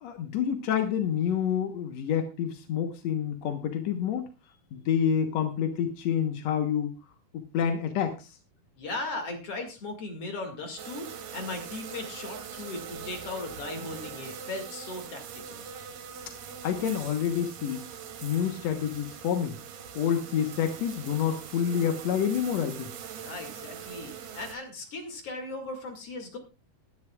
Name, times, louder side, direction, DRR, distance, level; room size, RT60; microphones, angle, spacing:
voice 1, 0.0-4.3 4.7-6.9 7.5-8.3 16.6-17.8 18.2-19.6 19.9-22.9, left 8 dB, 70° left, 6 dB, 1.7 m, -28 dB
voice 2, 8.8-15.6 23.1-26.4, left 2 dB, 45° left, 4 dB, 2.7 m, -38 dB
sound 1, 10.8-24.6, right 7 dB, 85° right, 3.6 m, -42 dB
21.0 x 11.0 x 2.3 m, 0.28 s
omnidirectional pair, 4.4 m